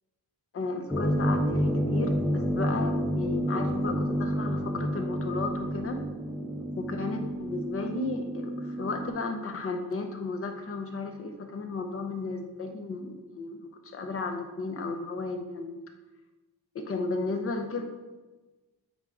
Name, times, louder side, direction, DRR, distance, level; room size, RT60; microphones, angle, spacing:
voice 1, 0.5-6.1 6.8-15.8 16.7-17.8, left 3 dB, 35° left, 5 dB, 0.8 m, -34 dB
sound 1, 0.9-9.1, equal, 5° left, 0.5 m, -29 dB
8.0 x 4.8 x 3.9 m, 1.2 s
wide cardioid pair, 165°, 39 cm